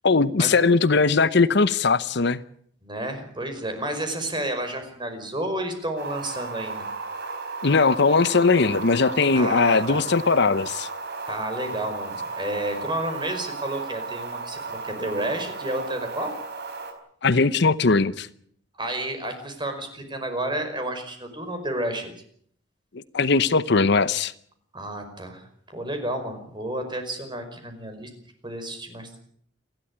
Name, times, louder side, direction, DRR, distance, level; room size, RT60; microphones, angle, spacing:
voice 1, 0.0-2.4 7.6-10.9 17.2-18.3 22.9-24.3, left 4 dB, 65° left, 0.9 m, -20 dB
voice 2, 2.8-6.9 9.3-10.0 11.3-16.3 18.8-22.1 24.7-25.5 25.7-28.1 28.4-29.2, right 1 dB, 25° right, 5.1 m, -31 dB
sound 1, 6.0-16.9, right 4 dB, 60° right, 4.5 m, -35 dB
28.5 x 12.0 x 9.9 m
head